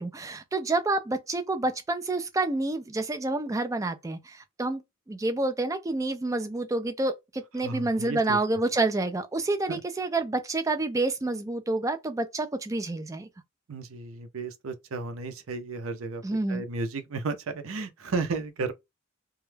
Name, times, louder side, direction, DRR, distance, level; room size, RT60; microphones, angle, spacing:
voice 1, 0.0-4.8 5.1-13.3 16.2-16.6, right 2 dB, 15° right, 0.3 m, -28 dB
voice 2, 7.6-8.4 9.7-9.8 13.7-16.2 16.5-18.7, right 3 dB, 80° right, 0.6 m, -33 dB
2.2 x 2.1 x 3.1 m
head